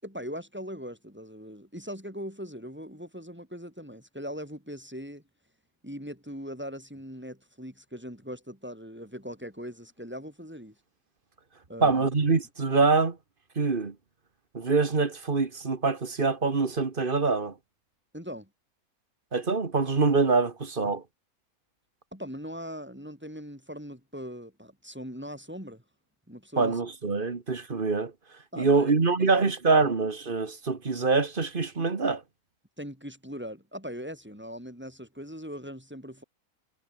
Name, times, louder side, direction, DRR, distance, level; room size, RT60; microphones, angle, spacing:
voice 1, 0.0-5.2 5.8-10.7 11.7-12.1 18.1-18.5 22.1-25.8 26.3-26.8 28.5-28.9 29.2-29.5 29.8-29.9 32.8-36.2, equal, 5° right, 5.9 m, -40 dB
voice 2, 11.8-13.2 13.5-13.9 14.5-17.5 19.3-21.0 26.6-28.1 28.6-32.2, right 4 dB, 35° right, 1.7 m, -25 dB
omnidirectional pair, 1.5 m